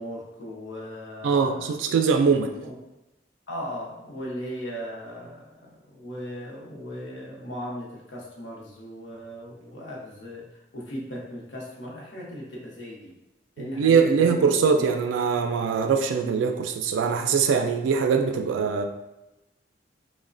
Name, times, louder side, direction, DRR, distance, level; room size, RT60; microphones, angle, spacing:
voice 1, 0.0-1.7 2.6-2.8 3.5-13.1 13.6-14.9, equal, 80° left, -3 dB, 0.7 m, -37 dB
voice 2, 1.2-2.6 13.6-18.8, right 6 dB, 85° right, 6 dB, 0.3 m, -22 dB
3.0 x 2.1 x 2.5 m, 0.94 s
head